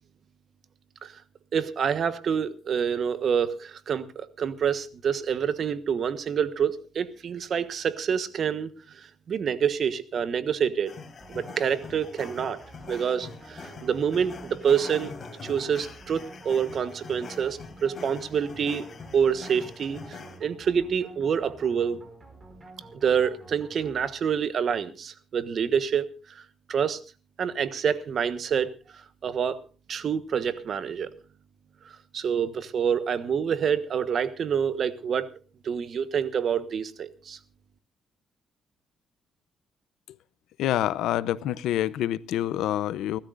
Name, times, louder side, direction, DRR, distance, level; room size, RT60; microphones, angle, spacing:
voice 1, 1.5-10.9 11.3-12.6 12.9-15.1 15.4-18.8 19.1-22.0 22.9-26.4 26.7-27.0 27.4-28.8 29.2-29.6 29.9-31.1 32.1-35.3 35.6-37.4, right 7 dB, 55° right, 1.2 m, -27 dB
sound 1, 10.9-20.4, left 4 dB, 40° left, 4.3 m, -43 dB
sound 2, 11.2-24.5, right 2 dB, 25° right, 5.2 m, -49 dB
voice 2, 40.6-43.2, left 12 dB, 85° left, 0.6 m, -27 dB
29.5 x 13.0 x 2.5 m
cardioid pair, 90°, 0 cm